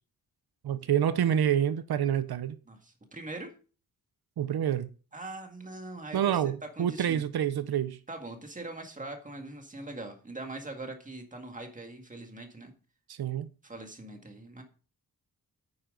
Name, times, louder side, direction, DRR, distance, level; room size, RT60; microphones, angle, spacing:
voice 1, 0.6-2.6 4.4-4.9 6.1-8.0 13.1-13.5, right 9 dB, 90° right, 0.7 m, -27 dB
voice 2, 2.7-3.5 5.1-7.2 8.1-12.7 13.6-14.6, right 2 dB, 20° right, 1.9 m, -42 dB
9.5 x 8.8 x 3.8 m
wide cardioid pair, 175°, 36 cm